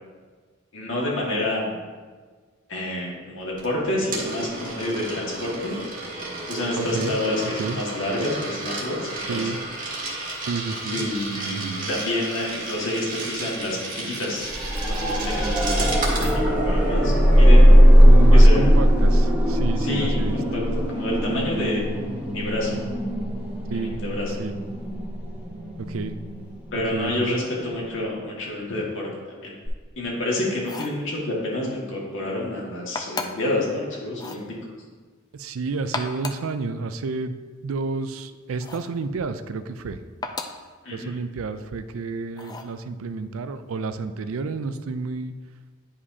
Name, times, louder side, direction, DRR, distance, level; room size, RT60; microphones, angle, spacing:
voice 1, 0.7-1.8 2.7-5.8 6.5-9.6 10.9-14.5 14.8-17.8 18.3-18.6 19.8-21.8 22.3-22.8 23.7-24.3 26.7-29.5 30.0-34.4 40.8-41.2, left 1 dB, 65° left, -4 dB, 1.8 m, -28 dB
Coin (dropping), 3.6-16.4, right 2 dB, 40° right, 1.6 m, -33 dB
voice 2, 6.8-7.1 7.6-7.8 9.3-9.6 10.5-11.0 11.3-11.9 18.0-20.4 23.7-24.0 24.4-24.5 25.9-26.2 26.9-27.4 35.3-40.0 40.9-45.3, right 4 dB, 80° right, 11 dB, 0.4 m, -30 dB
sound 1, 14.4-27.3 29.7-29.8, equal, 10° right, 1.1 m, -18 dB
sound 2, 30.6-31.0 32.9-33.5 34.1-34.5 35.8-36.5 38.6-39.0 40.2-40.7 42.4-42.8, left 3 dB, 20° left, 0.4 m, -34 dB
10.0 x 5.0 x 2.8 m, 1.5 s
head